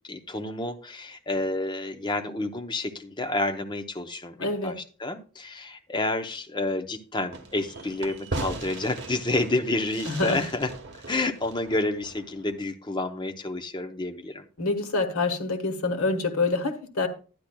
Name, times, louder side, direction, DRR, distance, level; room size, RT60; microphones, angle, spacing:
voice 1, 0.1-10.7 11.1-14.5, left 2 dB, 20° left, 7 dB, 0.6 m, -29 dB
voice 2, 4.4-4.8 10.1-10.4 14.6-17.1, left 3 dB, 85° left, 5 dB, 1.3 m, -26 dB
Fireworks, 7.3-12.5, right 3 dB, 55° right, 1.1 m, -38 dB
12.0 x 10.0 x 2.2 m, 0.37 s
head